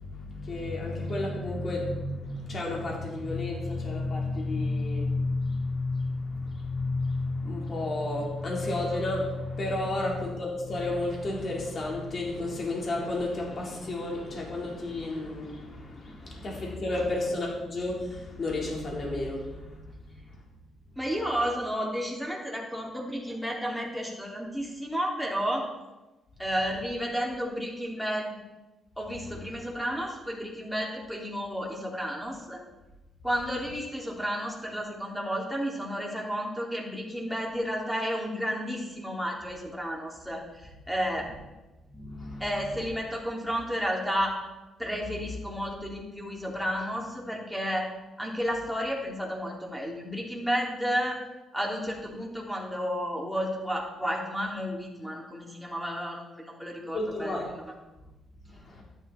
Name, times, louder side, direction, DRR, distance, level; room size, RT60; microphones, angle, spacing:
voice 1, 0.0-20.4 41.9-42.5 56.9-57.5 58.5-58.8, left 2 dB, 45° left, -3 dB, 4.4 m, -31 dB
voice 2, 21.0-25.7 26.4-28.4 29.0-32.6 33.2-41.3 42.4-44.4 44.8-47.9 48.2-51.2 51.5-57.4, equal, ahead, -2 dB, 3.5 m, -32 dB
12.5 x 11.0 x 4.5 m, 1.1 s
cardioid pair, 90°, 0 cm